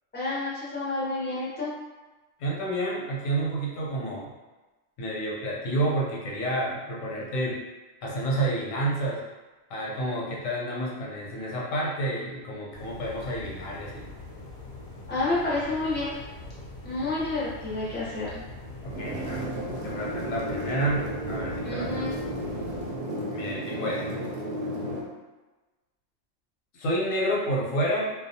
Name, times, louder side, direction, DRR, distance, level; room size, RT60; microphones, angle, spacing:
voice 1, 0.1-1.7 15.1-16.1 16.8-18.4 21.6-22.1, left 2 dB, 15° left, -7 dB, 0.4 m, -29 dB
voice 2, 2.4-4.3 5.0-7.6 8.0-9.2 9.7-14.1 18.8-19.5 19.8-22.1 23.3-24.2 26.7-28.1, right 1 dB, 90° left, -4 dB, 1.0 m, -29 dB
sound 1, 12.7-23.0, left 2 dB, 65° left, 0.8 m, -42 dB
sound 2, 18.9-25.0, right 1 dB, 60° right, 0.7 m, -33 dB
2.3 x 2.2 x 2.6 m, 1.2 s
omnidirectional pair, 1.3 m